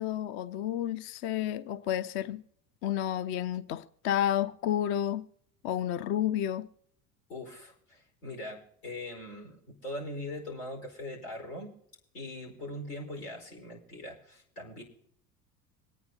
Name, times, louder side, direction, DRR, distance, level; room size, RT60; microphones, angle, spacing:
voice 1, 0.0-2.4 2.8-5.2 5.6-6.7, left 11 dB, 30° left, 0.4 m, -31 dB
voice 2, 7.3-11.7 12.1-14.8, left 1 dB, 70° left, 4.6 m, -41 dB
26.0 x 9.4 x 2.8 m
figure-of-eight pair, 75°, 47 cm